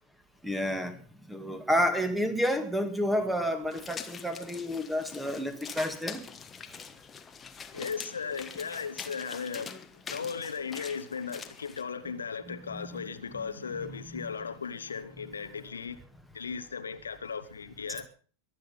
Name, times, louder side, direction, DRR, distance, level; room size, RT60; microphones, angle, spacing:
voice 1, 0.4-1.0 1.3-6.2 12.5-13.1 13.9-14.3, equal, 5° right, 2.1 m, -30 dB
sound 1, 3.7-11.8, left 6 dB, 20° left, 1.3 m, -44 dB
voice 2, 7.7-9.8 10.1-16.0 16.3-18.1, left 6 dB, 70° left, 1.0 m, -37 dB
22.5 x 8.5 x 5.7 m
figure-of-eight pair, 90°, 0 cm